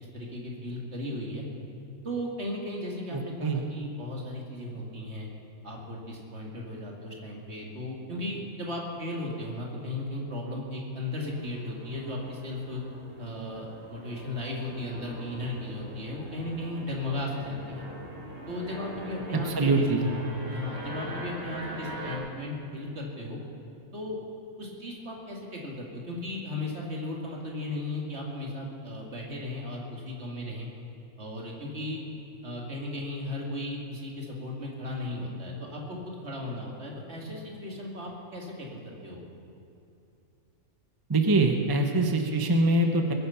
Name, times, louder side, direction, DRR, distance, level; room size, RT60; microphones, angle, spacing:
voice 1, 0.1-1.4 2.0-5.3 5.6-12.8 13.2-17.8 18.5-19.9 20.5-23.4 23.9-24.2 24.6-30.7 31.2-32.0 32.4-39.2, left 1 dB, 45° right, -2 dB, 2.7 m, -36 dB
voice 2, 3.1-3.6 19.3-20.1 41.1-43.1, right 2 dB, 20° right, 4 dB, 0.7 m, -24 dB
sound 1, 11.2-22.2, right 1 dB, 70° right, 2.8 m, -43 dB
21.0 x 9.8 x 5.8 m, 2.7 s
omnidirectional pair, 1.5 m